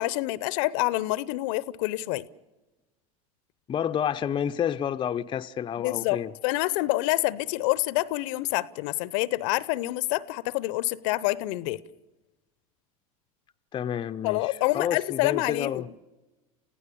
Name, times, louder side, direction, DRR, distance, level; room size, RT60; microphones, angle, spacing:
voice 1, 0.0-2.2 5.8-11.8 14.2-15.8, left 19 dB, 60° left, 0.8 m, -27 dB
voice 2, 3.7-6.3 13.7-14.5 14.7-15.9, left 9 dB, 25° left, 0.7 m, -29 dB
29.0 x 15.5 x 7.0 m
hypercardioid pair, 90°, 18 cm